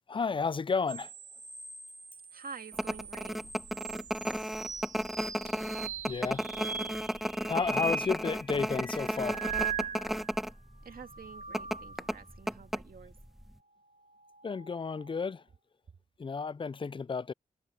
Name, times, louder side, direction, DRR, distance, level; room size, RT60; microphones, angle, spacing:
voice 1, 0.1-1.1 6.1-6.5 7.1-7.2 7.5-9.6 14.4-15.4 16.2-17.3, left 5 dB, 35° left, 0.4 m, -32 dB
sound 1, 0.9-10.4 10.9-12.3 14.1-15.2, right 5 dB, 55° right, 1.9 m, -41 dB
voice 2, 2.3-3.5 10.8-13.2, right 5 dB, 75° right, 2.3 m, -48 dB
sound 2, 2.7-10.5 10.8-10.9 11.5-13.2 13.5-13.6, equal, ahead, 1.5 m, -33 dB
cardioid pair, 60°, 15 cm